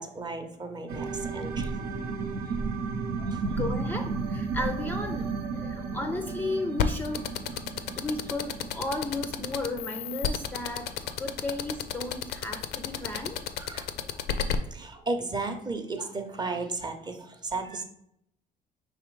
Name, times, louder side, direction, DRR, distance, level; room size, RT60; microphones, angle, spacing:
voice 1, 0.0-2.1 3.2-3.5 13.0-13.1 13.6-14.1 14.7-17.8, right 3 dB, 25° right, 6 dB, 0.6 m, -35 dB
sound 1, 0.9-12.2 12.6-12.7, right 4 dB, 65° right, 0.6 m, -34 dB
voice 2, 3.6-5.3 5.6-7.7 8.0-13.4, left 2 dB, 10° left, 4 dB, 0.4 m, -34 dB
sound 2, 6.8-14.6, left 9 dB, 75° left, 0.4 m, -30 dB
4.9 x 3.4 x 3.1 m, 0.74 s
cardioid pair, 110°, 17 cm